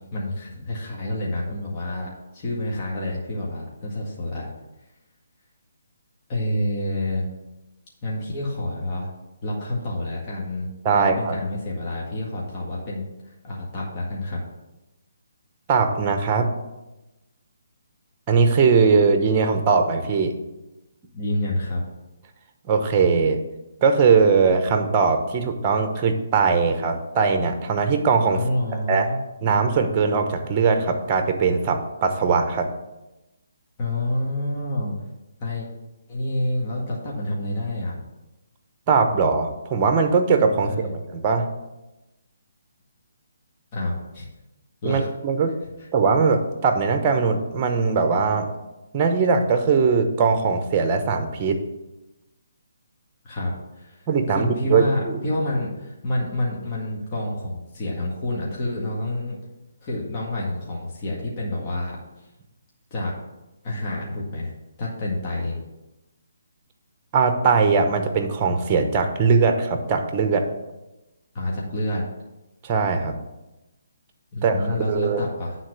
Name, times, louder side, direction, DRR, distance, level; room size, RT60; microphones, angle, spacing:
voice 1, 0.1-4.5 6.3-7.3 8.0-9.1 9.4-10.7 10.9-14.4 21.1-21.8 28.3-29.2 33.8-34.9 35.4-35.7 36.1-38.0 40.6-40.9 43.7-44.3 44.8-45.1 53.2-54.0 54.3-59.4 59.8-62.0 62.9-63.1 63.6-64.5 64.8-65.6 71.3-72.0 74.3-75.6, left 1 dB, 35° left, -4 dB, 1.8 m, -28 dB
voice 2, 10.8-11.4 15.7-16.5 18.3-20.3 22.7-23.4 23.8-28.4 28.9-29.1 29.4-32.7 38.9-41.5 44.8-45.6 45.9-48.5 48.9-51.6 54.1-55.2 67.1-70.5 72.6-73.2 74.4-75.3, right 5 dB, 25° right, 6 dB, 1.0 m, -20 dB
9.2 x 4.0 x 6.4 m, 0.99 s
hypercardioid pair, 150°, 0 cm